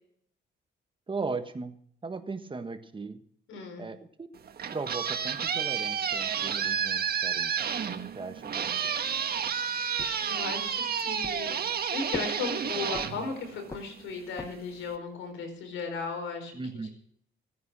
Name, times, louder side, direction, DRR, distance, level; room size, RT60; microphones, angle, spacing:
voice 1, 1.1-1.7 2.0-3.2 3.8-4.3 4.7-7.5 8.1-8.9 16.5-16.9, right 4 dB, 25° right, 9 dB, 1.4 m, -37 dB
voice 2, 3.5-3.9 9.7-11.6 11.9-16.5 16.8-16.9, left 4 dB, 90° left, 5 dB, 4.7 m, -36 dB
sound 1, 4.3-14.0, right 7 dB, 50° right, 1.6 m, -31 dB
sound 2, 10.0-10.8 11.2-11.8 12.1-13.3 13.7-14.8, left 2 dB, 15° left, 1.2 m, -43 dB
16.5 x 9.4 x 6.2 m, 0.63 s
cardioid pair, 90°, 20 cm